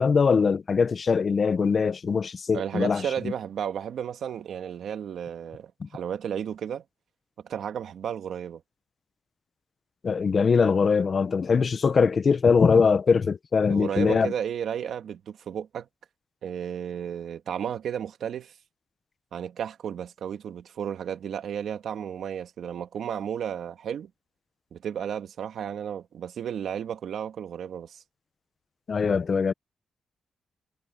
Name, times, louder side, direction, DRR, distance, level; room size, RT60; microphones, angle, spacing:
voice 1, 0.0-3.1 5.8-5.9 10.0-14.3 28.9-29.5, left 5 dB, 40° left, 0.8 m, -22 dB
voice 2, 2.5-6.8 7.4-8.6 13.7-15.9 16.4-18.5 19.3-24.1 24.7-28.0, right 8 dB, 75° right, 1.7 m, -33 dB
wide cardioid pair, 135°, 0 cm